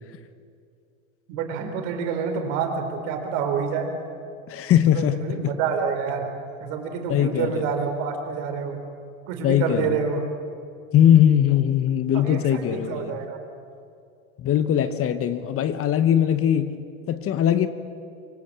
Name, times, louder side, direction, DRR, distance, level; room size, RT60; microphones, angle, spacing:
voice 1, 1.3-3.9 4.9-6.3 6.6-8.8 9.3-10.2 12.1-13.4, right 6 dB, 60° right, 4 dB, 4.2 m, -28 dB
voice 2, 4.5-5.5 7.1-7.7 9.4-10.0 10.9-13.1 14.4-16.7 17.1-17.7, left 10 dB, 35° left, 11 dB, 1.1 m, -20 dB
24.5 x 17.5 x 7.5 m, 2.4 s
supercardioid pair, 115°, 40 cm